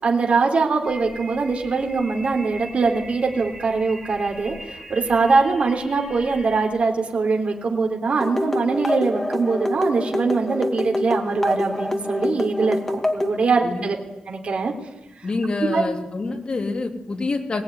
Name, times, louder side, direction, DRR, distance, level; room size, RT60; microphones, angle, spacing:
voice 1, 0.0-14.0 14.3-14.7 15.2-15.3 15.7-15.8, right 4 dB, 50° right, 2 dB, 3.6 m, -22 dB
sound 1, 0.8-6.7, right 1 dB, 15° right, 6.5 m, -41 dB
sound 2, 8.2-13.4, left 1 dB, 10° left, 2.2 m, -26 dB
voice 2, 15.2-17.6, left 3 dB, 35° left, 2 dB, 3.3 m, -26 dB
22.0 x 18.5 x 9.8 m, 0.95 s
wide cardioid pair, 150°, 3 cm